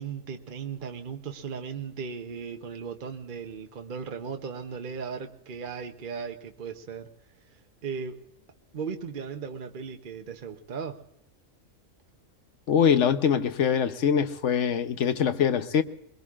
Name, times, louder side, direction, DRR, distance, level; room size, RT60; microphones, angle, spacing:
voice 1, 0.0-7.1 7.8-8.2 8.7-11.0, right 6 dB, 45° right, 5 dB, 0.9 m, -37 dB
voice 2, 12.7-15.8, left 7 dB, 70° left, 10 dB, 1.1 m, -23 dB
22.5 x 22.5 x 2.4 m, 0.79 s
omnidirectional pair, 1.3 m